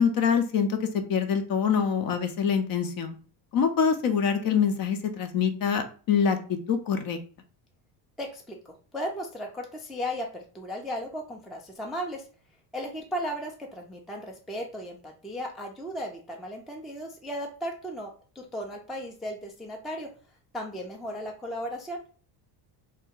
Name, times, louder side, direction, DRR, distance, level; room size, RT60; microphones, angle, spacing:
voice 1, 0.0-3.2 3.5-7.2, left 6 dB, 50° left, 8 dB, 0.6 m, -25 dB
voice 2, 8.2-12.3 12.7-20.1 20.5-22.0, equal, ahead, 1 dB, 0.3 m, -36 dB
2.7 x 2.1 x 3.6 m, 0.40 s
cardioid pair, 110°, 46 cm